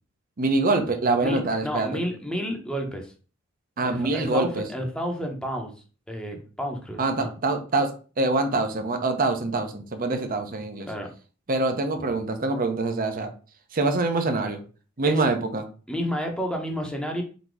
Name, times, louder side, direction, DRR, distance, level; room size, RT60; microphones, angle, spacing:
voice 1, 0.4-2.0 3.8-4.6 7.0-7.9 8.2-10.9 11.5-13.3 13.7-14.6 15.0-15.6, right 2 dB, 45° right, 6 dB, 0.7 m, -25 dB
voice 2, 1.2-3.1 3.8-5.7 6.1-7.3 10.9-11.1 12.0-12.1 15.0-15.3 15.9-17.2, equal, 5° left, 2 dB, 0.9 m, -31 dB
4.0 x 2.9 x 4.6 m, 0.37 s
head